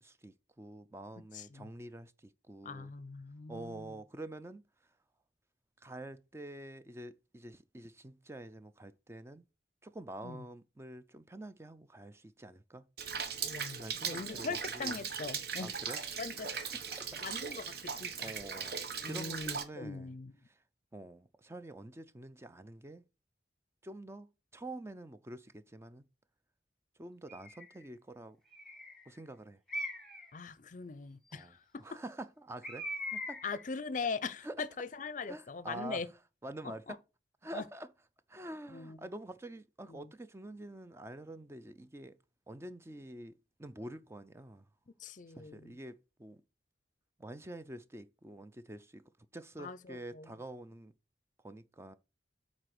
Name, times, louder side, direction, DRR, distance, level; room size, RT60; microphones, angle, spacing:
voice 1, 0.0-2.9 3.5-4.6 5.8-9.5 9.8-12.9 13.8-15.0 15.6-16.0 16.4-17.1 17.7-17.8 18.2-18.8 19.0-20.2 20.4-20.6 20.9-23.0 23.8-24.3 24.5-26.1 27.0-28.4 29.1-29.6 31.3-33.4 34.4-34.6 35.3-36.1 36.4-37.0 37.4-37.9 38.3-42.2 42.5-44.6 45.3-46.4 47.2-49.0 49.3-50.9 51.4-52.0, right 1 dB, 15° right, 0.5 m, -47 dB
voice 2, 1.3-1.7 2.6-3.9 10.2-10.4 13.4-15.7 16.2-16.5 17.2-18.3 19.0-20.3 30.3-31.6 31.9-32.0 33.4-36.1 37.5-37.6 38.7-39.0 39.9-40.1 45.0-45.7 49.6-50.3, left 4 dB, 45° left, 0.6 m, -41 dB
Rain, 13.0-19.6, right 6 dB, 60° right, 1.2 m, -39 dB
Bird, 27.3-27.7 28.5-29.1 29.7-30.3 32.6-33.6, left 1 dB, ahead, 1.8 m, -41 dB
8.0 x 4.2 x 6.1 m
head